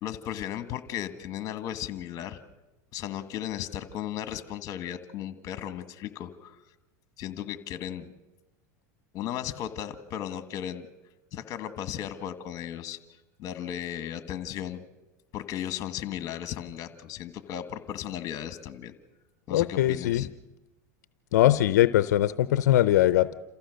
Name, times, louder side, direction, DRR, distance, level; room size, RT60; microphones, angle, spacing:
voice 1, 0.0-2.4 2.9-6.6 7.2-8.1 9.1-10.9 11.3-14.8 15.3-18.9 19.5-20.3, left 11 dB, 40° left, 10 dB, 1.6 m, -36 dB
voice 2, 19.5-20.2 21.3-23.3, left 13 dB, 85° left, 14 dB, 0.6 m, -21 dB
28.0 x 15.0 x 6.5 m, 1.0 s
supercardioid pair, 125°, 9 cm